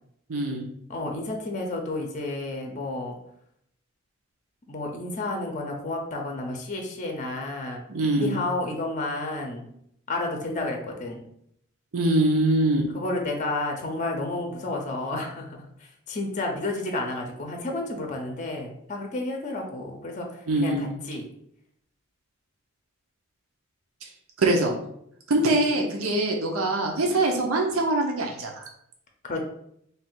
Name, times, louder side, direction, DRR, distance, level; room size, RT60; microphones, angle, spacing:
voice 1, 0.3-0.6 7.9-8.3 11.9-12.9 20.5-20.9 24.4-24.8 25.3-28.5, right 2 dB, 85° right, 0 dB, 0.7 m, -23 dB
voice 2, 0.9-3.1 4.7-7.8 8.2-9.7 10.1-11.2 12.9-21.2 29.2-29.4, left 2 dB, 35° left, 2 dB, 0.6 m, -31 dB
3.3 x 2.4 x 4.4 m, 0.73 s
head